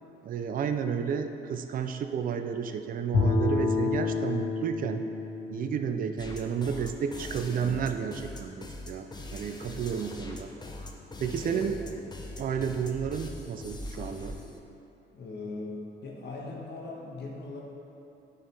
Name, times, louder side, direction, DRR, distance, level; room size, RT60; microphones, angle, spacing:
voice 1, 0.2-5.0 5.5-10.5 11.2-11.8 12.4-14.4, right 7 dB, 45° right, 8 dB, 0.4 m, -31 dB
Bowed string instrument, 3.1-7.4, left 4 dB, 90° left, 1.0 m, -30 dB
sound 1, 6.2-14.6, left 2 dB, 20° left, 0.7 m, -41 dB
voice 2, 7.5-7.8 11.1-12.0 15.1-17.6, left 3 dB, 60° left, -3 dB, 1.3 m, -40 dB
10.0 x 4.6 x 3.4 m, 2.7 s
cardioid pair, 90°, 20 cm